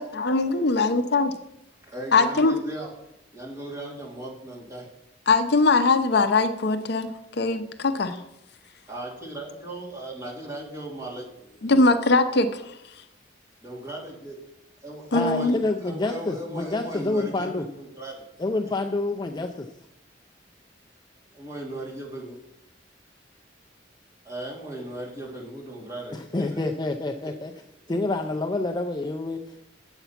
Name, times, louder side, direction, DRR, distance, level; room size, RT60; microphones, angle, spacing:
voice 1, 0.0-1.3 2.1-2.5 5.3-7.1 7.4-8.2 11.6-12.6 15.1-15.6, left 3 dB, 65° left, 9 dB, 0.7 m, -21 dB
voice 2, 1.9-2.9 3.3-4.9 8.9-11.7 12.0-12.1 13.6-14.4 14.8-18.2 21.3-22.4 24.2-26.6 27.2-27.3, right 1 dB, 15° right, -5 dB, 2.9 m, -37 dB
voice 3, 15.1-17.7 18.4-19.7 26.1-27.5 27.9-29.6, left 2 dB, 25° left, 4 dB, 0.5 m, -28 dB
8.2 x 8.0 x 5.8 m, 0.83 s
head